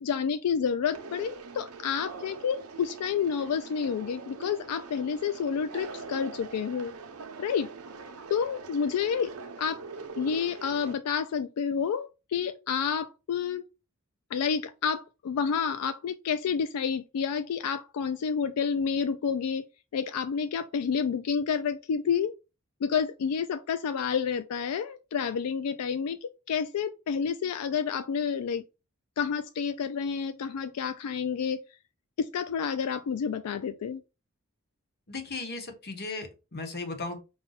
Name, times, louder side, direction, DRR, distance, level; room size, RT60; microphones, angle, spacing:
voice 1, 0.0-6.9 7.4-7.7 8.3-9.3 9.6-9.8 10.2-13.6 14.3-19.7 19.9-22.3 22.8-28.6 29.2-31.6 32.2-34.0, left 6 dB, 85° left, 0.3 m, -29 dB
Conversation, 0.9-10.9, right 4 dB, 80° right, 0.7 m, -43 dB
voice 2, 35.1-37.2, left 3 dB, 50° left, 1.0 m, -36 dB
5.5 x 2.2 x 3.9 m
head